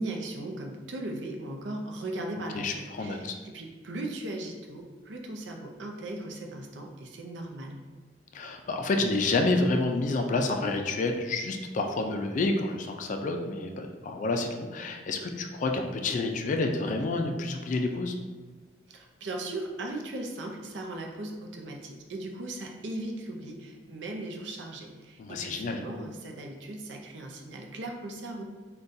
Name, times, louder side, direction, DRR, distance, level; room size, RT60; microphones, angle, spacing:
voice 1, 0.0-7.8 18.9-28.4, right 2 dB, 80° right, 2 dB, 0.5 m, -38 dB
voice 2, 2.5-3.3 8.3-18.2 25.2-25.8, left 2 dB, 45° left, 4 dB, 0.3 m, -29 dB
3.7 x 2.3 x 2.6 m, 1.4 s
head